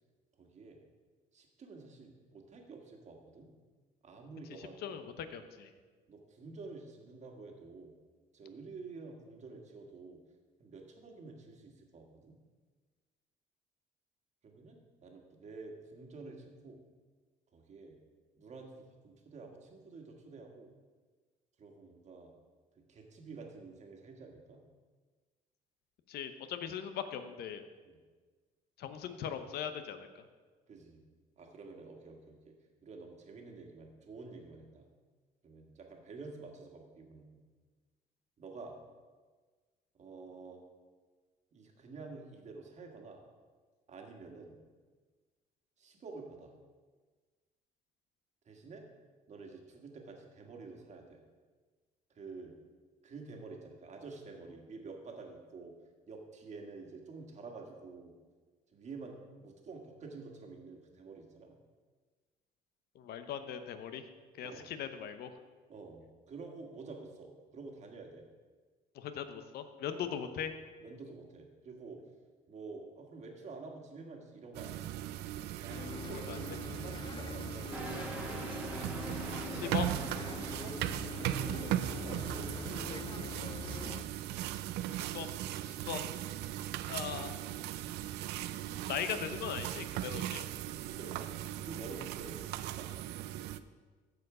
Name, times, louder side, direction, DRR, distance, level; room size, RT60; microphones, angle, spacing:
voice 1, 0.4-0.8 1.3-3.5 4.0-5.0 6.1-8.0 8.3-10.2 10.6-12.4 14.4-16.8 17.5-18.0 18.4-20.7 21.6-22.3 22.9-24.6 27.8-28.0 30.7-31.0 31.4-32.5 32.8-34.9 35.4-37.4 38.4-38.8 39.9-40.6 41.5-43.2 43.9-44.6 45.8-46.5 48.5-48.9 49.3-51.2 52.1-52.5 53.0-55.7 56.1-58.1 58.7-61.6 64.4-64.7 65.7-68.2 69.9-70.1 70.8-72.0 72.5-74.9 75.6-77.8 79.4-79.8 80.4-80.8 81.1-83.2 90.9-91.3 91.6-92.9, right 4 dB, 45° right, 2 dB, 1.7 m, -49 dB
voice 2, 4.6-5.7 26.1-27.6 28.8-30.2 62.9-64.0 64.4-65.3 68.9-70.5 76.3-76.4 79.5-79.9 84.9-85.3 85.6-86.0 86.9-87.4 88.9-90.5, left 8 dB, 70° left, 9 dB, 0.9 m, -39 dB
sound 1, 74.5-93.6, right 13 dB, 80° right, 0.4 m, -38 dB
Bus, 75.7-84.0, left 6 dB, 30° left, 0.4 m, -44 dB
sound 2, 77.7-82.7, equal, 10° right, 1.4 m, -45 dB
14.5 x 4.8 x 4.9 m, 1.4 s
cardioid pair, 110°, 17 cm